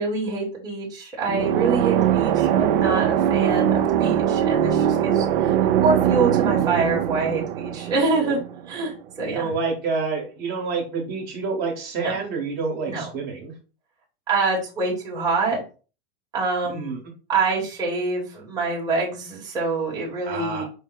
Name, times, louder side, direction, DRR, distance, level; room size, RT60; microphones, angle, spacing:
voice 1, 0.0-5.5 5.8-8.4 8.7-9.5 12.0-12.1 12.9-13.0 14.3-15.6 16.3-17.0 17.3-20.6, right 3 dB, 15° right, -5 dB, 1.1 m, -25 dB
sound 1, 1.3-8.9, right 10 dB, 70° right, 0.6 m, -21 dB
voice 2, 9.3-13.6 16.7-17.0 20.2-20.6, right 4 dB, 35° right, 0 dB, 1.2 m, -28 dB
5.2 x 2.1 x 3.8 m, 0.35 s
supercardioid pair, 150°, 29 cm